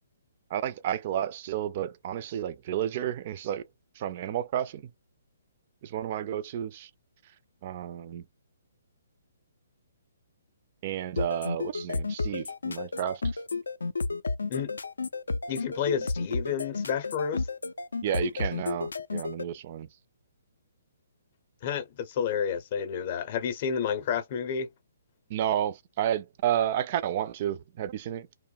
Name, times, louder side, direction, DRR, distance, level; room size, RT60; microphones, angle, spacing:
voice 1, 0.5-3.7 4.0-4.9 5.8-6.9 7.6-8.3 10.8-13.2 18.0-19.9 25.3-28.3, right 10 dB, 40° right, 0.3 m, -31 dB
sound 1, 11.2-19.4, left 3 dB, 90° left, 0.3 m, -31 dB
voice 2, 15.5-17.5 21.6-24.7, left 7 dB, 40° left, 0.6 m, -30 dB
2.6 x 2.0 x 2.3 m
hypercardioid pair, 145°, 0 cm